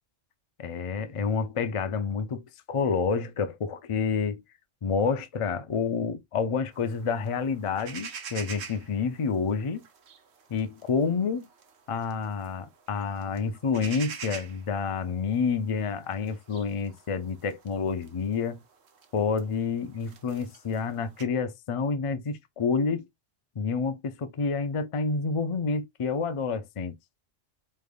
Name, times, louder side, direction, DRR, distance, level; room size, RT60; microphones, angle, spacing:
voice 1, 0.6-4.4 4.8-9.8 10.5-11.5 11.9-18.6 19.1-23.1 23.6-27.0, left 5 dB, 60° left, 0.3 m, -29 dB
sound 1, 6.7-21.2, right 6 dB, 60° right, 1.1 m, -46 dB
5.0 x 3.3 x 2.4 m
omnidirectional pair, 1.3 m